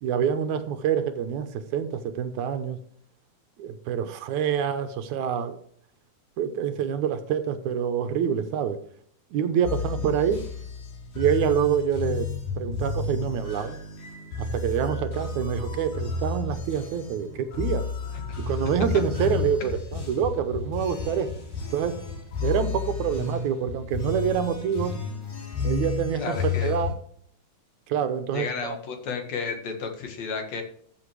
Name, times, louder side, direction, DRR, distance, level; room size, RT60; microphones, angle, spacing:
voice 1, 0.0-2.8 3.6-5.6 6.4-8.8 9.3-10.4 11.2-12.3 12.6-13.8 14.4-17.9 18.5-21.3 21.7-22.0 22.4-24.9 25.6-26.9 27.9-28.8, right 8 dB, 75° right, 9 dB, 2.2 m, -26 dB
sound 1, 9.6-26.9, left 4 dB, 90° left, 4.6 m, -32 dB
voice 2, 26.2-26.7 28.3-30.6, left 5 dB, 65° left, 4 dB, 2.8 m, -32 dB
14.0 x 7.5 x 3.3 m, 0.63 s
omnidirectional pair, 3.6 m